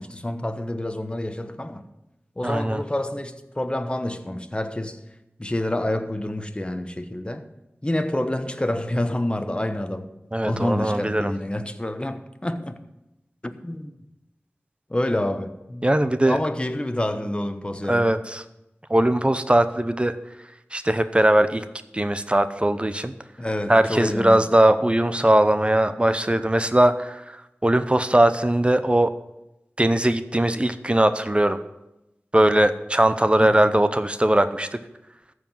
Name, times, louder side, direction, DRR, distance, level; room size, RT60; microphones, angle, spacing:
voice 1, 0.0-1.8 2.4-5.0 5.4-7.5 7.8-10.1 10.4-12.8 13.4-13.9 14.9-15.9 16.3-18.1 23.4-24.4 33.4-33.7, left 1 dB, 25° left, 1.1 m, -28 dB
voice 2, 2.4-2.8 10.3-11.3 15.8-16.4 17.9-18.4 18.9-20.2 20.7-21.6 21.9-23.1 23.7-29.1 29.8-31.6 32.3-34.8, right 1 dB, 25° right, 0.7 m, -20 dB
14.0 x 4.9 x 9.0 m
wide cardioid pair, 40°, 5 cm